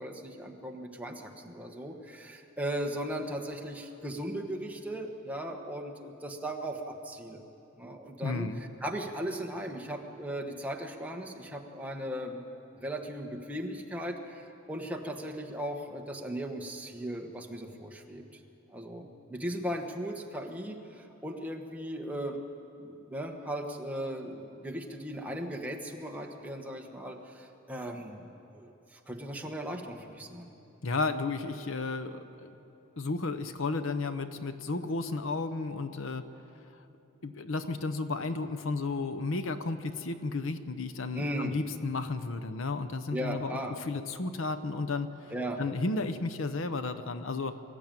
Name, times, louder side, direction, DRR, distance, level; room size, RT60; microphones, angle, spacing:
voice 1, 0.0-7.4 7.8-12.4 12.8-18.2 18.7-22.4 22.8-30.5 41.1-41.5 43.1-43.8 45.3-45.6, right 1 dB, 5° right, 1 dB, 1.3 m, -37 dB
voice 2, 8.2-8.6 30.8-32.5 33.0-36.3 37.2-45.3 45.6-47.5, left 3 dB, 60° left, 11 dB, 0.8 m, -33 dB
24.0 x 13.5 x 9.0 m, 3.0 s
head